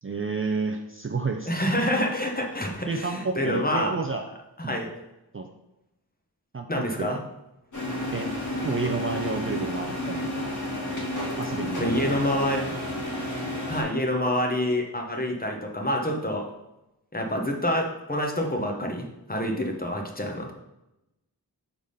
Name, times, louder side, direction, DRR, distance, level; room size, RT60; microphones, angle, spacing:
voice 1, 0.0-1.5 2.9-4.2 4.6-4.8 5.3-5.5 6.5-7.1 8.1-8.3 8.6-10.5 11.4-12.2, right 4 dB, 35° right, 3 dB, 0.4 m, -30 dB
voice 2, 1.5-4.0 4.6-4.9 6.7-7.2 11.8-12.8 13.7-16.5 17.1-20.5, left 1 dB, 20° left, 1 dB, 1.0 m, -27 dB
sound 1, 7.7-13.8, left 1 dB, 50° left, 1.8 m, -31 dB
5.0 x 3.7 x 5.4 m, 0.92 s
wide cardioid pair, 65°, 40 cm